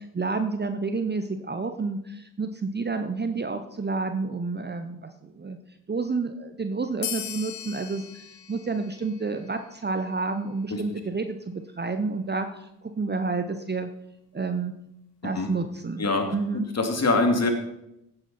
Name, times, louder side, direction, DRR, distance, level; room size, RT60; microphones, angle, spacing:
voice 1, 0.1-5.6 5.9-8.0 8.5-13.9 14.3-14.7 15.2-16.0 16.3-16.7, right 4 dB, 20° right, 8 dB, 1.0 m, -29 dB
sound 1, 7.0-10.1, left 10 dB, 85° left, 0.9 m, -38 dB
voice 2, 16.0-16.3 16.7-17.5, left 2 dB, 35° left, 4 dB, 2.7 m, -24 dB
15.5 x 8.8 x 4.4 m, 0.84 s
figure-of-eight pair, 40°, 47 cm